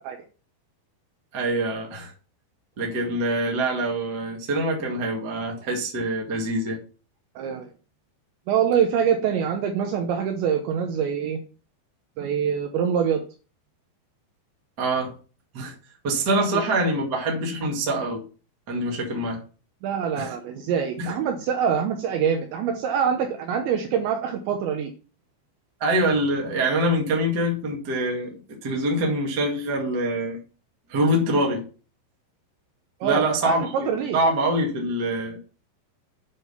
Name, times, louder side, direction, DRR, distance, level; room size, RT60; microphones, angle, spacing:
voice 1, 1.3-2.1 2.8-6.8 14.8-15.1 15.5-15.7 16.0-18.2 18.7-19.4 20.2-20.3 21.0-21.1 25.8-28.3 28.6-30.4 30.9-31.6 33.0-35.4, right 1 dB, 45° right, 1.2 m, -25 dB
voice 2, 7.4-7.7 8.5-11.4 12.2-13.2 19.8-24.9 33.0-34.2, right 7 dB, 75° right, 3.1 m, -25 dB
9.3 x 5.1 x 5.6 m
omnidirectional pair, 5.4 m